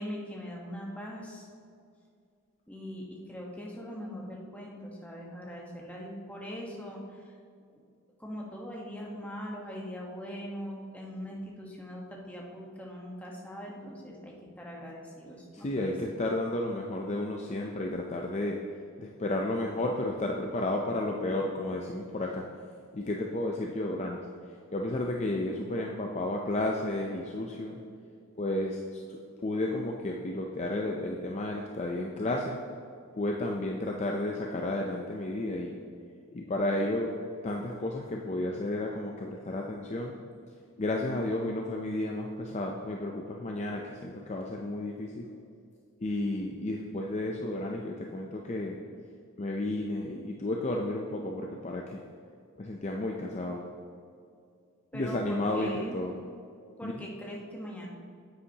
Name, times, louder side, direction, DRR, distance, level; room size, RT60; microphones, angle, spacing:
voice 1, 0.0-1.5 2.7-7.3 8.2-15.9 54.9-56.0 56.8-57.9, equal, 5° left, -3 dB, 1.2 m, -41 dB
voice 2, 15.5-18.6 19.0-22.5 22.9-24.2 24.7-27.8 28.4-32.6 33.2-35.8 36.3-37.1 37.4-40.2 40.8-45.3 46.0-48.8 49.4-52.0 52.6-53.7 54.9-56.2 56.8-57.1, left 1 dB, 30° left, 0 dB, 0.5 m, -32 dB
9.8 x 8.3 x 2.9 m, 2.4 s
head